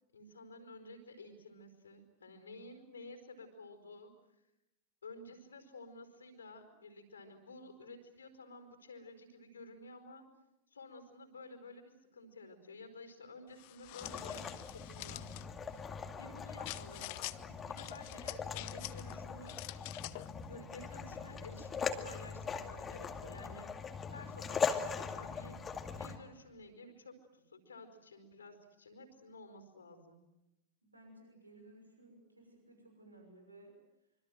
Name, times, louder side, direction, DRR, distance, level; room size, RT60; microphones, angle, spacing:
voice 1, 0.1-4.1 5.0-10.2 10.7-15.3 16.1-19.6 20.5-23.7 24.1-25.6 26.0-30.2, left 2 dB, 70° left, 8 dB, 4.8 m, -52 dB
sound 1, 13.6-15.5 16.6-17.4 17.8-19.1 19.5-20.3, left 21 dB, 45° left, 0.9 m, -46 dB
sound 2, 14.0-26.2, left 6 dB, 20° left, 2.3 m, -41 dB
voice 2, 30.8-33.7, right 2 dB, 85° right, 3 dB, 6.2 m, -58 dB
26.0 x 25.5 x 7.8 m, 0.91 s
figure-of-eight pair, 90°, 0 cm